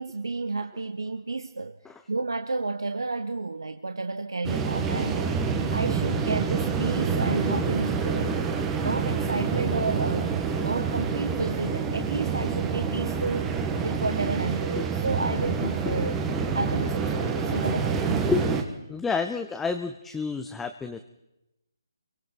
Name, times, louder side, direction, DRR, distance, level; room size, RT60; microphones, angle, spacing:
voice 1, 0.0-1.8 2.1-5.3 5.7-8.4 8.8-10.3 10.6-13.5 13.8-16.1 16.5-18.2, right 3 dB, 80° right, 1.0 m, -31 dB
sound 1, 4.4-18.6, right 5 dB, 10° right, 1.7 m, -27 dB
voice 2, 15.6-16.3 17.2-17.4 18.1-18.5 18.9-21.0, left 5 dB, 5° left, 0.7 m, -30 dB
29.5 x 23.5 x 4.6 m
figure-of-eight pair, 150°, 2 cm